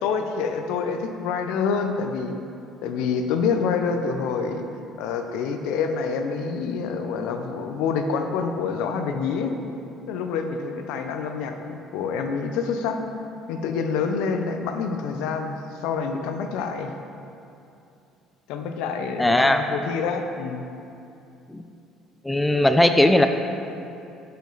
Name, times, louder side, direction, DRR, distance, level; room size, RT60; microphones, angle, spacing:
voice 1, 0.0-2.4 2.8-4.6 5.0-9.6 10.1-13.0 13.5-15.6 15.8-16.9 18.5-20.7, left 5 dB, 85° left, 5 dB, 0.5 m, -27 dB
voice 2, 19.2-19.6 21.5-21.6 22.2-23.3, left 1 dB, 10° left, 7 dB, 0.3 m, -18 dB
6.6 x 5.1 x 3.9 m, 2.7 s
cardioid pair, 105°, 0 cm